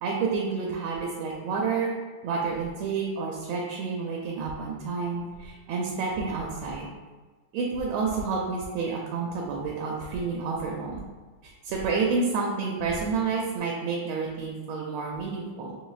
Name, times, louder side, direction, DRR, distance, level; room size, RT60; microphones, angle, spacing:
voice 1, 0.0-2.0 2.2-6.9 7.5-11.0 11.4-15.8, right 4 dB, 85° right, -1 dB, 1.4 m, -29 dB
5.4 x 3.1 x 2.3 m, 1.3 s
omnidirectional pair, 2.3 m